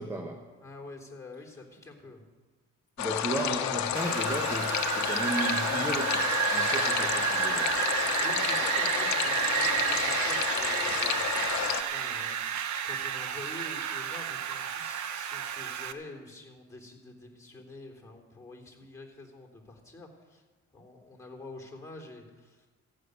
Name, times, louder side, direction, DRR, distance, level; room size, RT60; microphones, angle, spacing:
voice 1, 0.0-0.5 3.0-7.8, right 2 dB, 10° right, 4 dB, 1.2 m, -35 dB
voice 2, 0.6-2.2 8.2-11.3 11.9-12.5 12.8-20.4 20.7-22.7, left 2 dB, 10° left, 0 dB, 3.5 m, -47 dB
sound 1, 3.0-11.8, left 9 dB, 65° left, 1.0 m, -30 dB
Wind, 4.0-15.9, right 9 dB, 70° right, 0.9 m, -31 dB
14.5 x 6.6 x 9.6 m, 1.3 s
cardioid pair, 90°, 30 cm